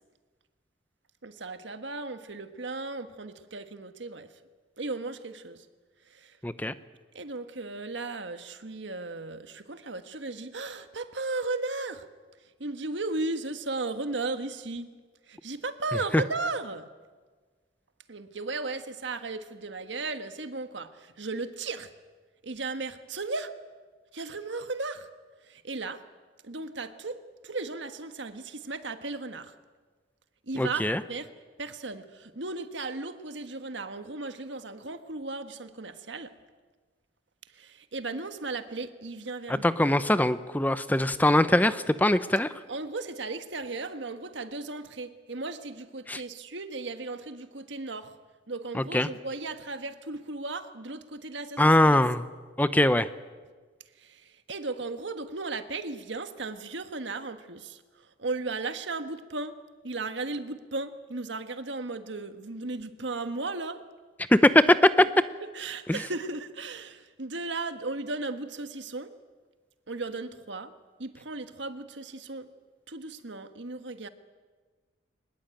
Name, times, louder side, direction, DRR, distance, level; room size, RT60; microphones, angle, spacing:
voice 1, 1.2-4.3 4.8-5.6 6.1-6.4 7.1-12.0 12.6-14.9 15.3-16.9 18.1-21.9 22.4-23.5 24.1-25.1 25.5-26.0 26.4-29.5 30.5-31.3 31.6-36.3 37.5-39.7 42.7-48.1 48.5-52.0 54.0-57.8 58.2-59.5 59.8-63.8 65.4-69.1 69.9-70.7 71.0-72.5 72.9-74.1, right 3 dB, 75° right, 9 dB, 1.5 m, -36 dB
voice 2, 6.4-6.7 16.1-16.2 30.6-31.0 39.6-42.5 46.1-46.2 48.7-49.1 51.6-52.2 52.6-53.1 64.3-65.1 65.9-66.0, left 1 dB, 10° left, 13 dB, 0.6 m, -22 dB
23.0 x 20.5 x 9.0 m, 1.4 s
head